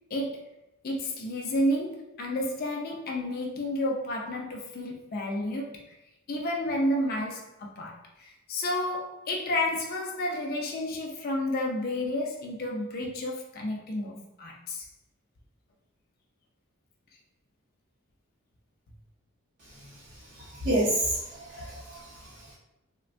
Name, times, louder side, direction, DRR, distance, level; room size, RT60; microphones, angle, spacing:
voice 1, 0.1-0.5 0.8-5.8 6.3-14.8, left 1 dB, 45° left, 0 dB, 0.4 m, -31 dB
voice 2, 20.3-22.5, right 1 dB, 40° right, -8 dB, 0.6 m, -30 dB
3.3 x 2.1 x 2.5 m, 0.93 s
head